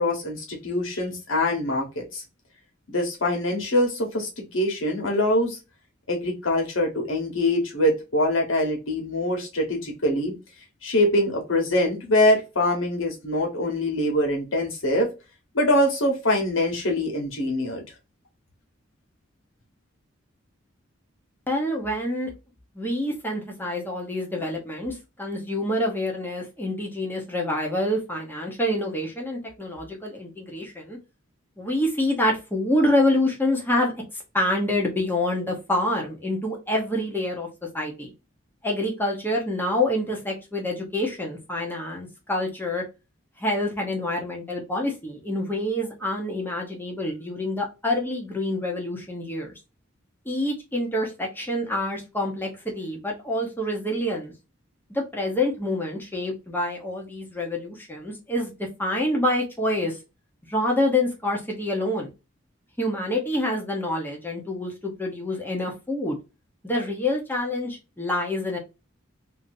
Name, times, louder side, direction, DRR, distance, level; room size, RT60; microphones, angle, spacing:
voice 1, 0.0-2.2 2.9-5.6 6.1-10.3 10.8-15.1 15.5-17.8, left 1 dB, 75° left, 1.2 m, -24 dB
voice 2, 21.5-22.3 22.7-31.0 31.6-33.9 34.3-37.5 37.7-38.1 38.6-42.8 43.4-49.5 50.2-54.3 54.9-58.5 58.8-60.0 60.5-62.1 62.8-66.2 66.6-68.6, left 1 dB, 10° left, 0.9 m, -27 dB
2.8 x 2.7 x 2.6 m
head